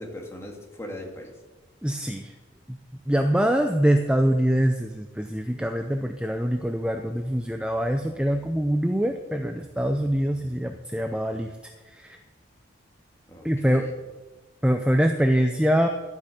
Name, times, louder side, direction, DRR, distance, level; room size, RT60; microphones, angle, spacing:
voice 1, 0.0-1.4 3.4-3.5 13.3-13.9, left 1 dB, 15° left, 0 dB, 1.9 m, -39 dB
voice 2, 1.8-2.3 2.7-2.8 3.1-11.5 11.9-12.2 13.4-13.8 14.6-15.9, equal, 5° right, 5 dB, 0.5 m, -24 dB
12.5 x 8.4 x 6.7 m, 1.2 s
head